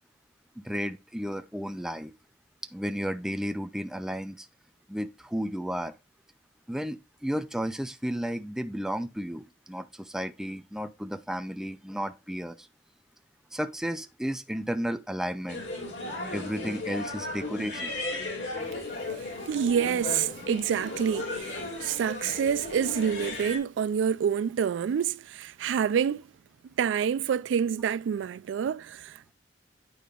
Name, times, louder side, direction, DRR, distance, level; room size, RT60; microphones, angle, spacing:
voice 1, 0.6-2.1 2.7-4.5 4.9-5.9 6.7-12.7 13.5-15.6 16.3-18.0, equal, 5° right, 0.4 m, -33 dB
sound 1, 15.5-23.6, left 2 dB, 70° left, 2.3 m, -36 dB
voice 2, 19.4-26.2 26.8-29.3, right 8 dB, 90° right, 0.3 m, -27 dB
9.3 x 5.0 x 2.4 m
head